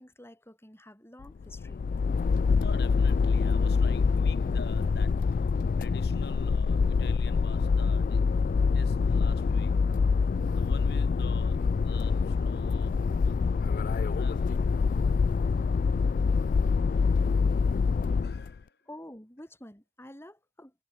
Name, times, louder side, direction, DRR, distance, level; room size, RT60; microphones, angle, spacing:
voice 1, 0.0-1.8 18.4-18.5 18.9-20.7, left 1 dB, 15° left, 6.2 m, -49 dB
sound 1, 1.2-18.5, left 5 dB, 50° left, 0.3 m, -25 dB
voice 2, 2.6-5.5 5.8-8.3 8.7-9.8 10.5-13.4 14.1-14.6 18.2-18.8, left 3 dB, 65° left, 5.8 m, -47 dB
head